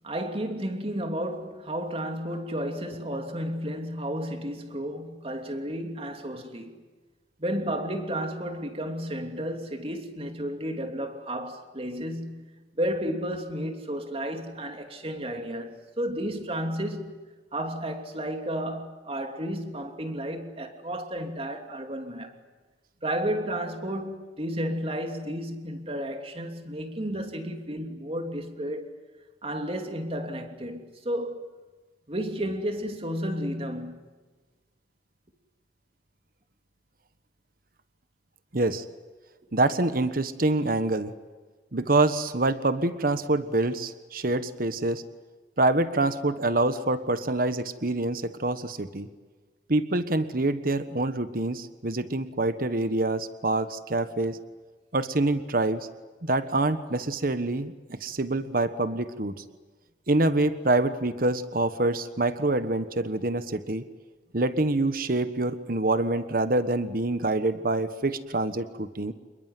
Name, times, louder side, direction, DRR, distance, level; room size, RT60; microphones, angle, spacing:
voice 1, 0.0-6.7 7.4-17.2 17.5-22.3 23.0-28.9 29.4-31.5 32.1-34.1, equal, 35° right, 3.0 m, -32 dB
voice 2, 38.5-38.8 39.5-41.1 41.7-45.0 45.6-49.1 49.7-54.4 54.9-55.9 56.2-59.3 60.1-63.8 64.3-69.1, right 2 dB, 55° right, 1.3 m, -26 dB
28.0 x 22.0 x 9.5 m
head